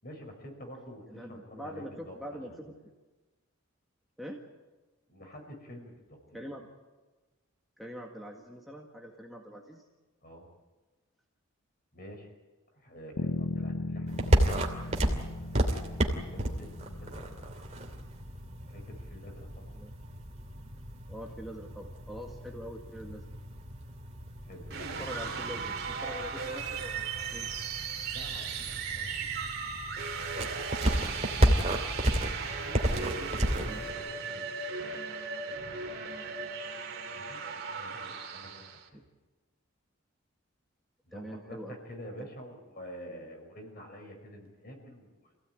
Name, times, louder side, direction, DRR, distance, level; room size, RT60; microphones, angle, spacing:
voice 1, 0.0-2.6 5.1-6.5 10.2-10.5 11.9-12.3 12.7-14.8 15.5-15.6 15.8-17.2 18.7-19.7 24.4-25.5 28.1-29.6 32.4-35.8 37.1-38.6 38.9-39.0 41.1-45.3, equal, 45° left, 3 dB, 5.4 m, -48 dB
voice 2, 1.1-2.8 4.2-4.4 6.3-6.7 7.8-9.8 19.8-19.9 21.1-23.2 25.0-27.5 31.1-31.8 33.7-33.8 41.1-41.8 42.2-42.3, equal, ahead, -1 dB, 1.8 m, -44 dB
Bass guitar, 13.2-17.6, left 2 dB, 75° left, 0.9 m, -37 dB
sound 1, 14.1-33.9, equal, 30° right, 2.7 m, -32 dB
sound 2, 24.7-38.8, right 5 dB, 45° right, 2.9 m, -37 dB
27.0 x 16.5 x 9.1 m, 1.2 s
head